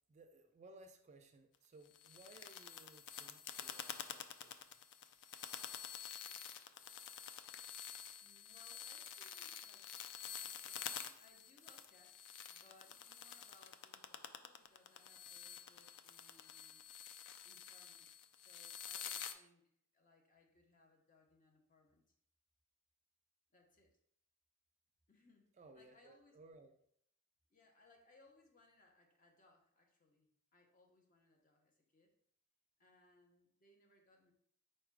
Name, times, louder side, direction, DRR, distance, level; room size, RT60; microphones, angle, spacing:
voice 1, 0.1-4.6 25.6-26.7, right 2 dB, 35° right, 6 dB, 0.4 m, -61 dB
sound 1, 1.8-19.3, left 8 dB, 60° left, 0.3 m, -49 dB
voice 2, 8.2-9.9 10.2-16.8 17.4-22.0 23.5-24.0 25.1-26.4 27.5-32.1 32.8-34.3, left 2 dB, 40° left, 1 dB, 0.8 m, -69 dB
4.7 x 2.2 x 4.6 m, 0.68 s
head